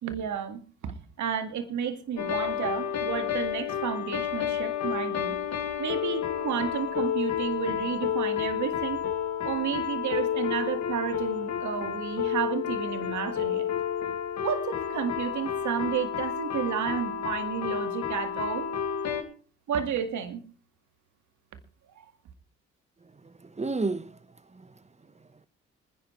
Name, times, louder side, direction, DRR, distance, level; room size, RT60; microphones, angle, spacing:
voice 1, 0.0-5.4 5.8-9.0 9.4-13.7 14.4-18.7 19.7-20.4 22.0-22.1, right 8 dB, 75° right, 2.0 m, -32 dB
sound 1, 2.2-19.2, left 9 dB, 65° left, 2.1 m, -30 dB
voice 2, 23.0-24.8 25.1-25.5, right 3 dB, 20° right, 1.2 m, -34 dB
26.0 x 10.5 x 3.2 m
supercardioid pair, 50°, 30 cm